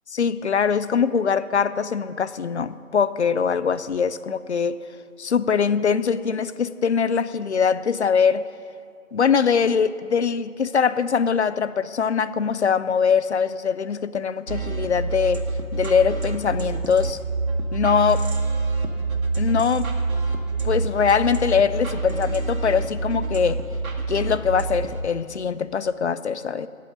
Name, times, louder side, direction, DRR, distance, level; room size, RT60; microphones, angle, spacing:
voice 1, 0.1-4.8 5.2-8.5 9.1-15.4 15.7-17.2 17.7-18.3 19.4-19.9 20.6-23.6 24.1-26.7, left 6 dB, 50° left, 15 dB, 0.5 m, -22 dB
sound 1, 14.5-25.0, right 3 dB, 75° right, 1.9 m, -27 dB
14.0 x 5.5 x 8.8 m, 2.5 s
figure-of-eight pair, 155°, 43 cm